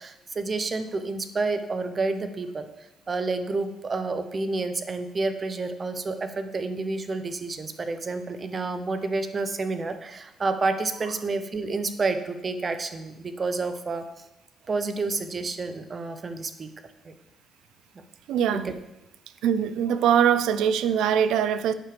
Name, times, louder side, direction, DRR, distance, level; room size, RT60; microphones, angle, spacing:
voice 1, 0.0-14.3 14.7-16.7 17.0-17.1 17.9-18.0 18.5-18.7, right 3 dB, 35° right, 9 dB, 0.7 m, -29 dB
voice 2, 18.3-18.7 19.4-21.7, right 8 dB, 85° right, 13 dB, 0.4 m, -22 dB
8.9 x 6.6 x 3.3 m, 0.91 s
cardioid pair, 90°, 0 cm